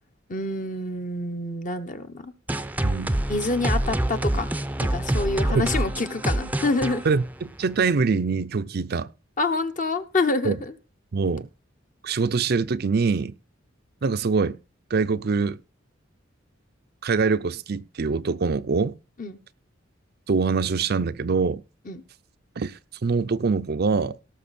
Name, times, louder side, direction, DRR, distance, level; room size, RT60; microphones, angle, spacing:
voice 1, 0.3-2.3 3.3-4.5 4.8-7.0 9.4-10.7 19.2-19.4 21.9-22.0, left 2 dB, 40° left, 1.1 m, -27 dB
sound 1, 2.5-7.9, right 1 dB, 10° right, 0.6 m, -26 dB
voice 2, 2.8-3.2 5.5-5.7 7.0-9.1 10.4-10.6 11.1-11.5 12.0-13.3 14.0-14.6 14.9-15.6 17.0-19.0 20.3-21.6 22.6-24.2, right 4 dB, 50° right, 0.5 m, -24 dB
18.0 x 6.7 x 4.2 m
head